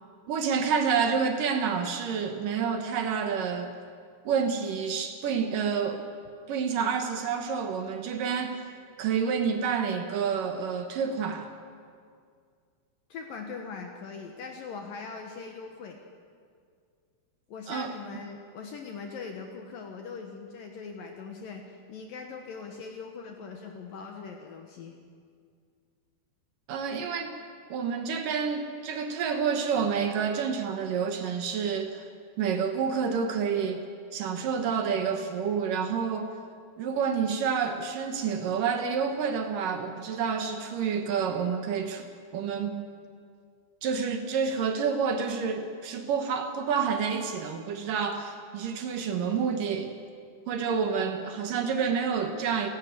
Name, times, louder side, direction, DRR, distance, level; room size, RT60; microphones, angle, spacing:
voice 1, 0.3-3.7 4.3-6.1 6.5-8.7 9.0-11.5 17.7-17.9 26.7-27.4 27.7-32.1 32.4-33.8 34.1-36.3 36.8-42.1 42.3-42.9 43.8-49.9 50.5-52.7, right 6 dB, 65° right, 6 dB, 2.5 m, -28 dB
voice 2, 13.1-16.0 17.5-24.9, left 5 dB, 65° left, 3 dB, 2.7 m, -41 dB
29.0 x 11.5 x 9.4 m, 2.2 s
omnidirectional pair, 4.9 m